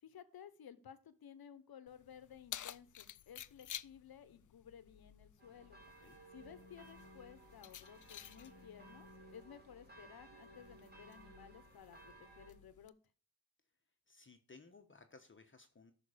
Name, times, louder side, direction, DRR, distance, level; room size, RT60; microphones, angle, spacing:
voice 1, 0.0-5.8 6.3-12.9, left 8 dB, 90° left, 13 dB, 1.0 m, -56 dB
Keys jangling, 1.9-12.9, left 11 dB, 60° left, 0.5 m, -54 dB
sound 1, 5.4-12.5, right 2 dB, 25° right, 2.6 m, -59 dB
voice 2, 14.1-15.9, left 4 dB, 35° left, 6 dB, 1.1 m, -60 dB
13.0 x 5.9 x 5.0 m, 0.38 s
wide cardioid pair, 80°, 36 cm